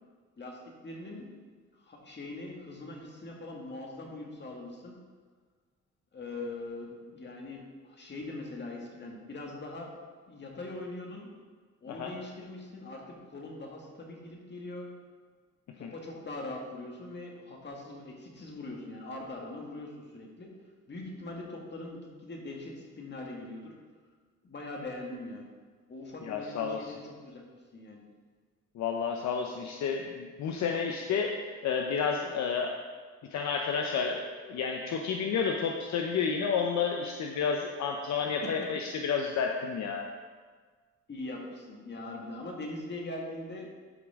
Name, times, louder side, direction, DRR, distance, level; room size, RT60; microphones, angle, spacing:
voice 1, 0.4-1.3 1.8-5.0 6.1-9.9 10.3-11.3 11.8-14.9 15.8-20.5 20.9-23.7 24.4-25.5 25.9-28.0 38.4-38.5 41.1-43.7, left 2 dB, 35° left, -1 dB, 1.9 m, -42 dB
voice 2, 26.2-26.9 28.8-32.8 33.3-40.0, left 6 dB, 65° left, 2 dB, 0.7 m, -31 dB
12.0 x 5.1 x 3.6 m, 1.5 s
cardioid pair, 90°, 30 cm